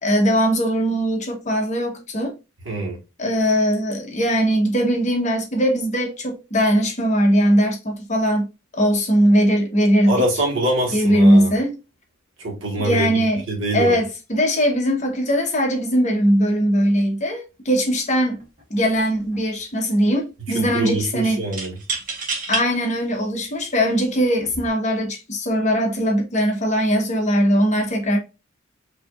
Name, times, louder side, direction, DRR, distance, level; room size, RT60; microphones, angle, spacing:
voice 1, 0.0-2.3 3.2-8.5 8.8-10.2 10.9-11.7 12.8-13.4 13.7-18.4 18.7-21.4 22.5-28.2, equal, 35° left, 0.9 m, -20 dB
voice 2, 2.6-3.0 10.1-11.5 12.4-13.2 13.5-14.0 20.4-21.8, right 1 dB, 70° right, 1.5 m, -24 dB
sound 1, 18.4-18.6 18.9-19.6 21.5-22.7 23.4-23.5 24.4-24.7, right 3 dB, 40° right, 1.3 m, -29 dB
4.9 x 2.8 x 2.3 m
head